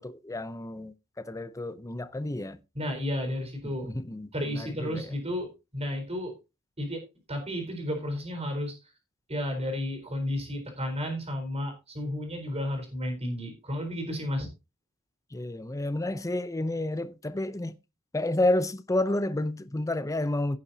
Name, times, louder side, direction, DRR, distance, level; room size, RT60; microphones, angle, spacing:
voice 1, 0.0-2.6 3.8-5.1 15.3-17.7 18.1-20.6, left 1 dB, 15° left, 0.6 m, -30 dB
voice 2, 2.7-3.9 4.3-6.3 6.8-7.0 7.3-8.7 9.3-14.5, left 1 dB, 30° right, 4.1 m, -32 dB
16.5 x 7.0 x 2.8 m
head